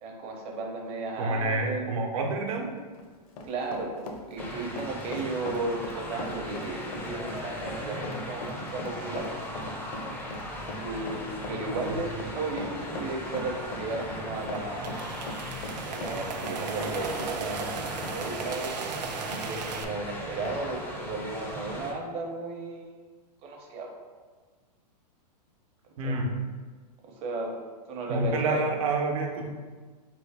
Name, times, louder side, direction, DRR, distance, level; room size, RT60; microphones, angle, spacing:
voice 1, 0.0-2.1 3.4-9.3 10.8-15.0 15.7-18.7 19.4-22.8 23.4-23.9 26.0-26.2 27.2-27.6 27.9-28.6, right 3 dB, 30° right, 0 dB, 0.8 m, -34 dB
voice 2, 1.2-2.8 11.9-12.0 26.0-26.3 28.1-29.5, right 2 dB, 55° right, 1 dB, 0.9 m, -28 dB
Run, 2.8-19.5 19.8-19.9 20.4-20.6, left 2 dB, 60° left, 0.7 m, -40 dB
sound 1, 4.4-21.9, left 1 dB, 10° left, 0.5 m, -38 dB
sound 2, 14.3-19.8, right 6 dB, 80° right, 0.5 m, -36 dB
4.0 x 3.4 x 3.4 m, 1.4 s
hypercardioid pair, 135°, 21 cm